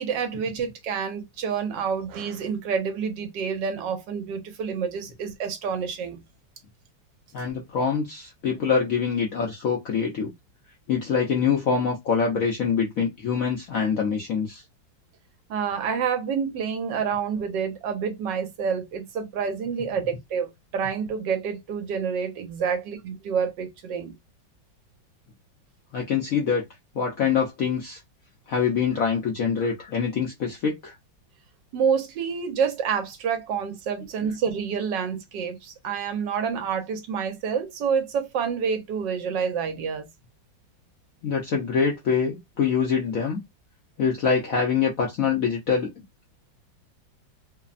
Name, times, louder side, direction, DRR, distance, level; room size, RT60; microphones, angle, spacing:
voice 1, 0.0-6.2 15.5-24.1 31.7-40.1, right 6 dB, 70° right, 1.3 m, -28 dB
voice 2, 7.3-10.3 10.9-14.6 25.9-26.6 26.9-28.0 28.5-30.9 41.2-43.4 44.0-46.0, left 6 dB, 70° left, 0.8 m, -25 dB
3.2 x 2.0 x 2.4 m
omnidirectional pair, 2.1 m